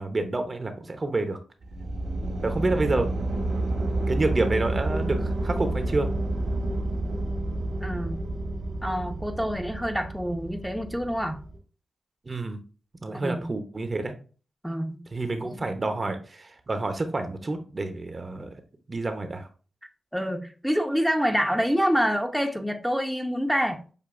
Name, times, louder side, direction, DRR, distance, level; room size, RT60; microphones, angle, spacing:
voice 1, 0.0-1.4 2.4-3.1 4.1-6.1 12.2-12.6 13.0-14.1 15.1-18.5 18.9-19.5, right 2 dB, 40° right, 0.8 m, -28 dB
sound 1, 1.6-11.6, right 2 dB, 80° right, 1.5 m, -29 dB
voice 2, 7.8-8.2 8.8-11.4 13.1-13.5 14.6-15.0 15.4-15.7 20.1-23.8, equal, ahead, 0.8 m, -27 dB
6.7 x 2.6 x 2.6 m
supercardioid pair, 40°, 0 cm